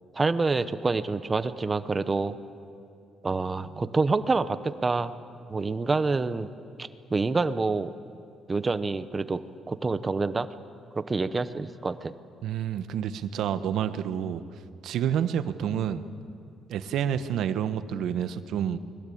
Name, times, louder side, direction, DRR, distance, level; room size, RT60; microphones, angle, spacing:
voice 1, 0.1-2.3 3.2-5.1 5.5-6.5 6.8-7.9 8.5-9.4 9.7-10.5 11.0-12.1, right 3 dB, 20° right, 12 dB, 0.8 m, -27 dB
voice 2, 12.4-14.4 14.8-16.0 16.7-18.8, right 9 dB, 70° right, 11 dB, 1.1 m, -28 dB
29.5 x 21.5 x 8.6 m, 2.6 s
cardioid pair, 170°, 0 cm